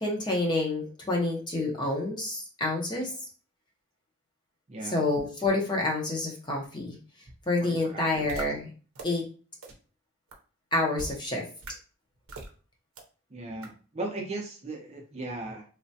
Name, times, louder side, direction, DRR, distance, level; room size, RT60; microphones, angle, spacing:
voice 1, 0.0-3.1 4.9-7.0 7.5-8.7 9.0-9.2 10.7-11.4, left 2 dB, 20° left, -1 dB, 0.6 m, -28 dB
voice 2, 4.7-5.0 7.6-8.3 13.3-15.6, right 2 dB, 30° right, 0 dB, 0.6 m, -37 dB
sound 1, 8.3-8.4 8.9-9.0 9.6-9.7 10.3-10.4 11.0-11.1 11.6-11.7 12.3-12.5 13.0-13.1 13.6-13.7, right 2 dB, 80° right, 0.6 m, -39 dB
3.2 x 2.1 x 2.7 m, 0.38 s
head